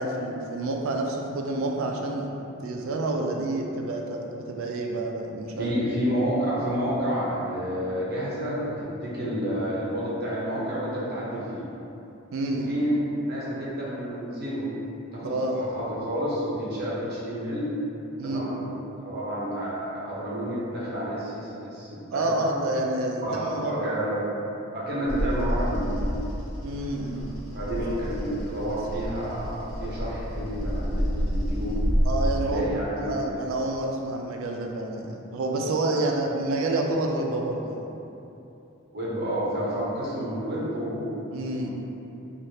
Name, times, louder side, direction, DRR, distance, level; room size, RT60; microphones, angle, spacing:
voice 1, 0.0-2.3 2.6-5.7 12.3-12.8 15.2-15.6 18.2-18.5 22.1-23.7 26.6-27.3 32.0-32.7 33.0-37.8 41.3-41.7, right 2 dB, 70° right, 1 dB, 0.4 m, -28 dB
voice 2, 5.6-11.7 12.5-13.0 13.3-14.7 15.1-17.7 18.2-18.7 19.0-22.5 23.2-24.3 24.7-26.3 27.5-31.8 32.5-33.4 35.9-36.0 38.9-41.7, equal, 50° right, -7 dB, 0.7 m, -30 dB
Bird vocalization bird call bird song, 25.1-32.3, equal, 75° left, 0.8 m, -29 dB
3.2 x 2.4 x 2.7 m, 2.9 s
head